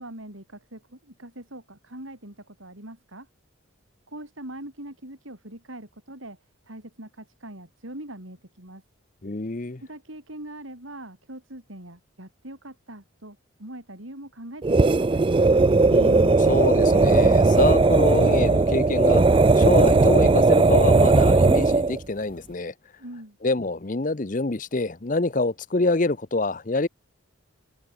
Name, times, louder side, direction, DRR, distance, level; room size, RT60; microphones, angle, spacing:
voice 1, 0.0-3.3 4.1-6.4 6.6-8.8 9.8-15.2 23.0-23.4, right 1 dB, 75° right, 6.5 m, -42 dB
voice 2, 9.2-9.8 15.9-19.2 19.5-22.7 23.4-26.9, left 2 dB, 40° left, 0.8 m, -26 dB
sound 1, 14.6-22.0, right 3 dB, 25° right, 0.3 m, -18 dB
head